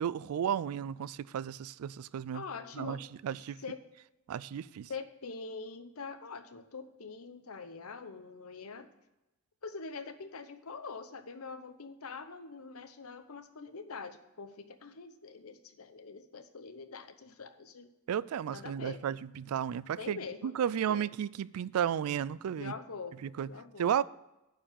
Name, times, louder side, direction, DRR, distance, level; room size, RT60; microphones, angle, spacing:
voice 1, 0.0-2.4 2.7-3.6 4.3-4.9 18.1-20.2 20.4-22.7 23.2-23.5 23.8-24.0, right 9 dB, 85° right, 0.3 m, -33 dB
voice 2, 2.3-3.0 3.6-3.8 4.9-8.9 9.6-17.9 18.5-19.0 20.0-20.5 20.9-21.1 22.5-23.2 23.4-23.9, left 4 dB, 85° left, 0.8 m, -44 dB
9.8 x 4.7 x 7.2 m
head